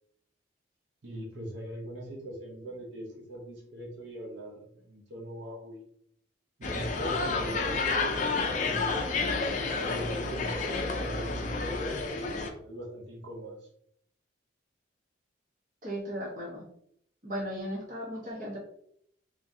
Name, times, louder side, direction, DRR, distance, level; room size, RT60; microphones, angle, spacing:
voice 1, 1.0-5.8 6.6-9.0 9.5-13.7, right 1 dB, 75° right, -2 dB, 0.8 m, -41 dB
sound 1, 6.6-12.5, left 3 dB, 40° left, 0.5 m, -30 dB
voice 2, 15.8-16.6 17.2-18.6, equal, 45° right, -3 dB, 1.2 m, -36 dB
3.6 x 3.2 x 2.7 m, 0.68 s
head